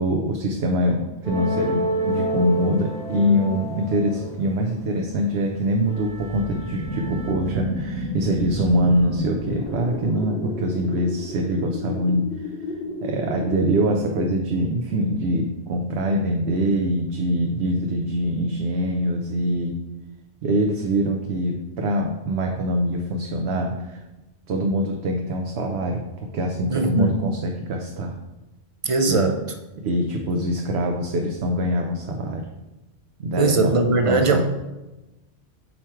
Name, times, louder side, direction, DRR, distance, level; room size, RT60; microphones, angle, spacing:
voice 1, 0.0-12.5 13.0-19.7 20.4-24.0 24.5-26.0 26.3-28.1 29.1-29.2 29.8-32.5 33.2-33.8 34.1-34.4, equal, 80° right, 2 dB, 0.9 m, -24 dB
sound 1, 1.2-5.3 5.8-7.3, right 1 dB, 5° left, 1.0 m, -29 dB
sound 2, 5.9-10.3, equal, 20° left, 0.5 m, -32 dB
sound 3, 8.7-14.3 14.6-15.9 16.4-16.5, left 2 dB, 65° left, 1.3 m, -34 dB
voice 2, 26.7-27.2 28.8-29.4 33.4-34.4, right 3 dB, 45° right, 6 dB, 0.5 m, -20 dB
5.5 x 4.5 x 4.4 m, 1.0 s
omnidirectional pair, 1.1 m